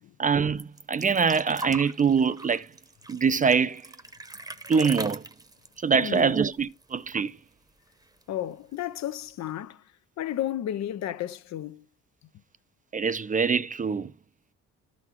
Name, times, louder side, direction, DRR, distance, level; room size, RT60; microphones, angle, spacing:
voice 1, 0.2-2.7 3.1-3.8 4.7-5.2 5.8-7.4 12.9-14.1, right 6 dB, 25° right, 0.4 m, -24 dB
sound 1, 0.6-7.0 7.3-7.4 7.7-8.4 9.2-9.3, right 2 dB, 10° right, 0.9 m, -40 dB
voice 2, 6.0-6.5 8.3-9.8 10.2-11.8, left 12 dB, 65° left, 0.6 m, -33 dB
12.5 x 4.2 x 4.4 m
cardioid pair, 90°, 30 cm